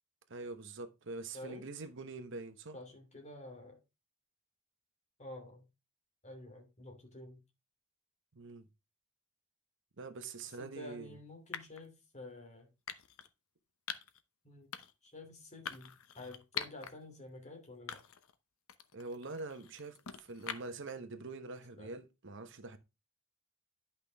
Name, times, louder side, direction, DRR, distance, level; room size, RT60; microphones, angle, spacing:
voice 1, 0.3-2.8 8.3-8.7 10.0-11.1 18.9-22.8, right 3 dB, 60° right, 1.1 m, -45 dB
voice 2, 2.7-3.8 5.2-5.7 6.2-7.4 10.6-12.7 14.4-14.8 15.0-18.0 21.7-21.9, left 1 dB, 35° left, 2.7 m, -50 dB
sound 1, 10.2-10.5 11.5-11.9 12.9-13.3 13.9-14.2 14.7-15.1 15.7-16.9 17.3-17.4 17.9-18.3 18.7-20.9, left 8 dB, 80° left, 0.8 m, -44 dB
10.5 x 5.8 x 3.4 m
head